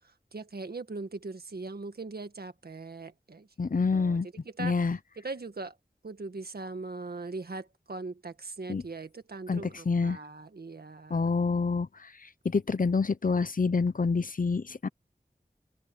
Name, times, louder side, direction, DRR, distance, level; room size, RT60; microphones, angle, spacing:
voice 1, 0.3-4.2 4.6-4.7 5.2-5.7 6.0-11.2, right 3 dB, 85° right, 1.8 m, -40 dB
voice 2, 3.6-4.3 4.6-5.0 8.7-8.8 9.5-10.2 11.1-12.1 12.4-14.9, left 4 dB, 60° left, 0.7 m, -27 dB
open air
wide cardioid pair, 50°, 16 cm